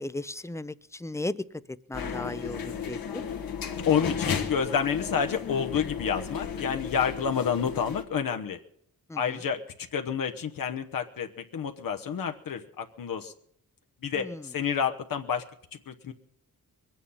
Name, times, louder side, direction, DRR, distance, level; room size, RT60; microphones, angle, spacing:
voice 1, 0.0-1.4 1.9-3.2 9.1-9.4 14.2-14.5, left 2 dB, 10° left, 15 dB, 0.6 m, -36 dB
sound 1, 1.9-8.0, left 7 dB, 90° left, 1.7 m, -34 dB
voice 2, 3.9-8.6 9.1-9.6 9.9-13.3 14.0-15.4 15.9-16.1, left 7 dB, 70° left, 5 dB, 1.0 m, -29 dB
22.0 x 9.1 x 5.6 m, 0.68 s
wide cardioid pair, 95°, 35 cm